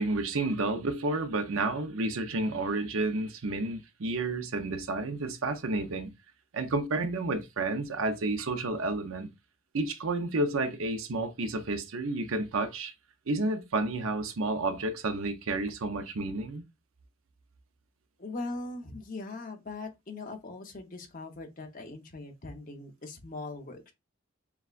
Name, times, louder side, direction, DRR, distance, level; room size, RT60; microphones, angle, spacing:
voice 1, 0.0-6.1 6.5-9.3 9.7-12.9 13.3-16.6, right 2 dB, 80° right, 0.7 m, -31 dB
voice 2, 18.2-23.9, left 2 dB, 40° left, 0.9 m, -40 dB
6.9 x 2.3 x 2.5 m
head